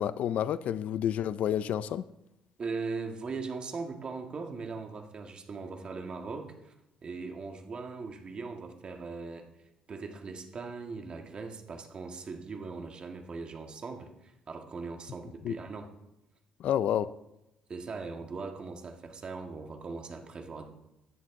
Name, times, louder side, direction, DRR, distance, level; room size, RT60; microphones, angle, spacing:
voice 1, 0.0-2.0 15.4-15.5 16.6-17.1, left 10 dB, 65° left, 16 dB, 0.4 m, -29 dB
voice 2, 2.6-6.7 7.0-15.9 17.7-20.7, right 4 dB, 40° right, 5 dB, 1.6 m, -40 dB
15.5 x 10.0 x 3.7 m, 0.88 s
cardioid pair, 115°, 3 cm